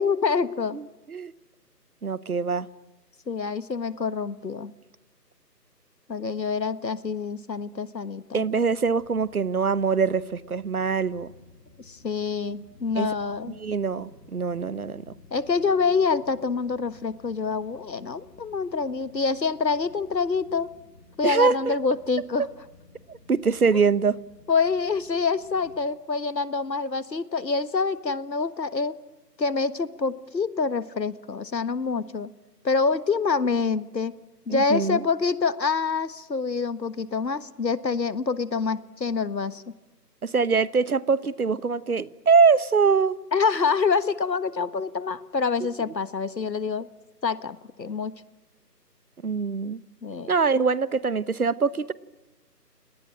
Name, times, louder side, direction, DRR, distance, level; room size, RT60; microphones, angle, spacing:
voice 1, 0.0-0.8 3.3-4.7 6.1-8.4 11.9-13.6 15.3-20.7 21.2-22.5 23.7-23.8 24.5-28.9 29.4-32.3 32.6-34.2 34.5-39.7 43.3-46.9 47.2-48.2 50.0-50.3, left 4 dB, 80° left, 15 dB, 1.6 m, -26 dB
voice 2, 0.7-1.3 2.0-2.7 8.3-11.3 12.9-13.1 13.6-15.0 21.2-21.7 23.1-24.2 34.5-35.0 40.2-43.2 49.2-49.8 50.3-51.9, right 5 dB, 60° right, 19 dB, 1.1 m, -23 dB
sound 1, 8.7-25.7, left 3 dB, 5° left, 1.5 m, -54 dB
28.5 x 19.0 x 9.0 m, 1.1 s
figure-of-eight pair, 165°, 49 cm